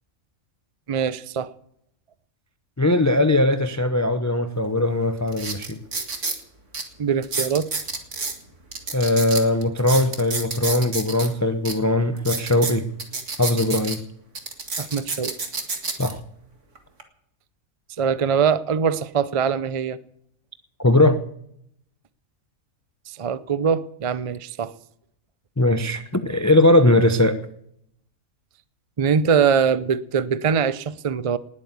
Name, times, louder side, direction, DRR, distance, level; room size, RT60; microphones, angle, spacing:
voice 1, 0.9-1.5 7.0-7.7 14.8-15.4 18.0-20.0 23.1-24.7 29.0-31.4, right 6 dB, 40° right, 0.5 m, -22 dB
voice 2, 2.8-5.8 8.9-12.9 13.4-14.0 16.0-16.2 20.8-21.2 25.6-27.4, left 1 dB, 15° left, 0.7 m, -20 dB
sound 1, 4.6-4.7 5.3-6.4 6.7-6.8 7.2-8.3 8.7-11.3 11.6-11.7 12.2-14.0 14.3-16.1 16.7-17.0, right 4 dB, 60° right, 2.3 m, -29 dB
19.5 x 8.7 x 8.2 m
omnidirectional pair, 1.5 m